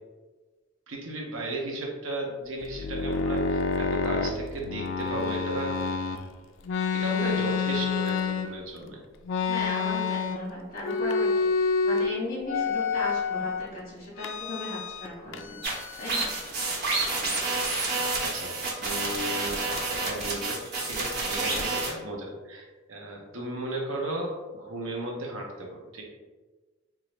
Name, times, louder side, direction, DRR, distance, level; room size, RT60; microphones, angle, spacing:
voice 1, 0.9-5.7 6.9-9.0 15.3-15.6 16.6-18.5 18.8-20.6 20.8-26.0, right 1 dB, 75° right, 0 dB, 0.8 m, -35 dB
sound 1, 2.6-6.2 6.7-8.8 9.3-10.5 10.8-12.1 12.5-13.7 14.2-15.1 15.3-16.5, left 5 dB, 70° left, 0.3 m, -28 dB
voice 2, 9.5-15.6 16.0-16.3, left 1 dB, 45° left, -5 dB, 1.5 m, -36 dB
sound 2, 15.6-21.9, right 3 dB, 50° right, 0.9 m, -29 dB
3.9 x 2.4 x 3.1 m, 1.3 s
head